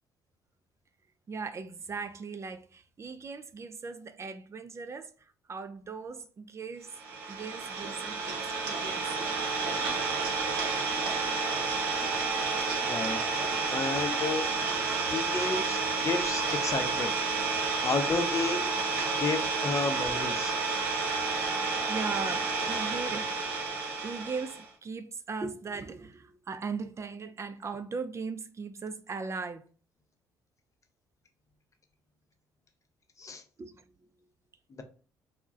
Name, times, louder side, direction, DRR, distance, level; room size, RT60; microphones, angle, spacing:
voice 1, 1.3-5.1 5.5-6.9 7.3-9.1 21.9-23.3 24.0-29.6 33.6-33.8, right 4 dB, 30° right, 0.4 m, -38 dB
Idling, 6.9-24.7, right 4 dB, 80° right, 0.6 m, -30 dB
voice 2, 12.8-13.2 13.7-14.5 15.1-17.1 17.8-18.7 19.2-20.5 33.2-33.4 34.7-34.8, left 4 dB, 35° left, 0.6 m, -31 dB
2.2 x 2.1 x 3.7 m
hypercardioid pair, 50°, 9 cm